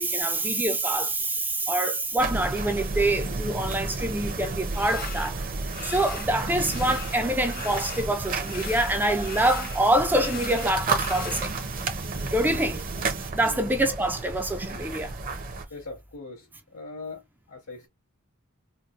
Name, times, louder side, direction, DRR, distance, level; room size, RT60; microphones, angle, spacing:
voice 1, 0.0-5.4 5.8-11.5 12.3-12.8 13.3-15.2, right 1 dB, 10° right, 0.5 m, -25 dB
sound 1, 2.2-15.6, right 3 dB, 40° right, 0.8 m, -32 dB
sound 2, 4.8-5.3 5.7-6.3 6.6-8.1 8.4-11.5, left 8 dB, 40° left, 0.5 m, -40 dB
voice 2, 15.7-17.2 17.5-17.9, left 3 dB, 80° left, 1.9 m, -40 dB
4.3 x 2.2 x 2.4 m
head